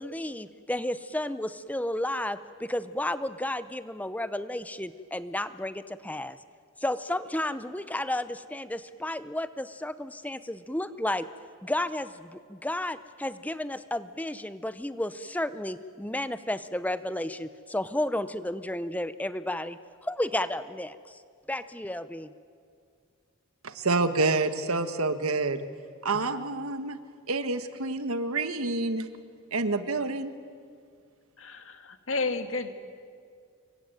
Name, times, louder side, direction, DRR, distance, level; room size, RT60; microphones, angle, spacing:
voice 1, 0.0-6.4 6.8-11.3 11.6-21.2 21.5-22.3, left 1 dB, 5° left, 13 dB, 0.6 m, -32 dB
voice 2, 23.6-25.7 26.0-27.0 27.3-29.1 29.5-30.3, right 3 dB, 85° right, 10 dB, 1.6 m, -28 dB
voice 3, 31.4-32.7, left 3 dB, 65° left, 8 dB, 1.9 m, -31 dB
26.5 x 23.5 x 9.2 m, 2.2 s
head